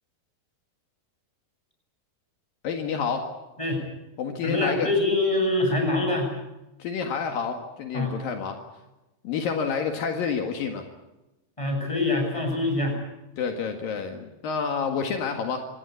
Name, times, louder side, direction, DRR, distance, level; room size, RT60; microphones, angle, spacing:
voice 1, 2.6-3.3 4.2-4.9 6.8-8.6 9.2-10.9 13.4-15.7, left 6 dB, 70° left, 4 dB, 3.5 m, -29 dB
voice 2, 4.4-6.3 7.9-8.1 11.6-13.0, left 2 dB, 10° left, 1 dB, 7.9 m, -24 dB
27.0 x 18.5 x 8.5 m, 1.0 s
omnidirectional pair, 4.3 m